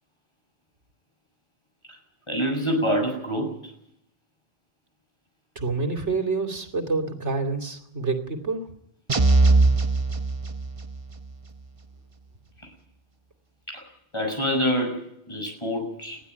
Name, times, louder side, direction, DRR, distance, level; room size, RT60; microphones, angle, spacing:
voice 1, 2.3-3.7 13.7-13.8 14.1-15.0 15.3-16.2, equal, 25° left, 3 dB, 7.0 m, -26 dB
voice 2, 5.6-8.7, right 4 dB, 85° right, 5 dB, 3.0 m, -27 dB
sound 1, 9.1-11.0, right 3 dB, 30° right, 1.0 m, -20 dB
21.5 x 15.0 x 9.7 m, 0.76 s
omnidirectional pair, 1.2 m